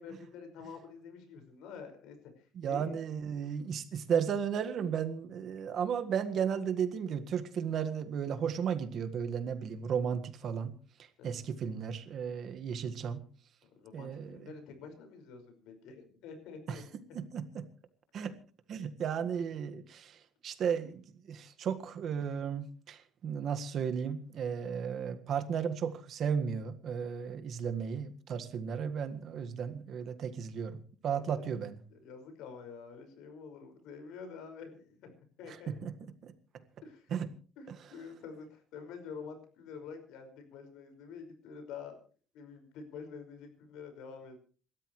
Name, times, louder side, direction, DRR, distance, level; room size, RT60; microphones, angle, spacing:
voice 1, 0.0-3.0 11.2-11.4 13.6-16.8 31.1-31.4 31.9-35.1 35.4-35.7 36.8-37.1 37.6-42.0 42.3-44.4, left 5 dB, 85° left, 7 dB, 5.5 m, -48 dB
voice 2, 2.5-10.7 11.2-13.2 13.9-14.5 16.7-16.8 17.1-17.7 18.1-18.4 18.7-31.8 35.5-35.9 36.2-36.3 37.1-37.3 37.7-37.8, right 7 dB, 50° right, 9 dB, 1.7 m, -34 dB
28.0 x 13.0 x 3.2 m, 0.40 s
cardioid pair, 140°, 0 cm